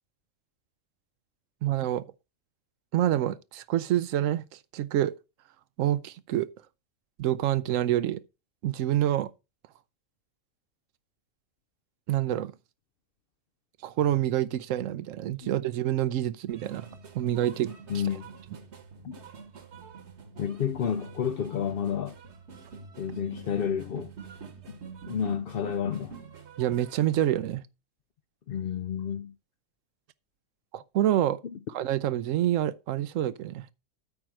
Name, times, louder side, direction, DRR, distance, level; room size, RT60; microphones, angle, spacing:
voice 1, 1.6-2.0 2.9-4.4 4.7-5.1 5.8-6.5 7.2-8.2 8.6-9.3 12.1-12.5 13.8-16.9 17.1-17.7 26.6-27.6 30.7-31.4 31.7-33.6, right 12 dB, 85° right, 1.0 m, -27 dB
sound 1, 16.5-27.1, right 5 dB, 60° right, 1.4 m, -46 dB
voice 2, 17.9-18.3 19.0-19.2 20.4-22.1 23.0-24.1 24.7-24.8 25.1-26.2 28.5-29.3 31.4-31.6, left 8 dB, 60° left, 0.6 m, -30 dB
8.7 x 4.5 x 6.2 m
omnidirectional pair, 1.3 m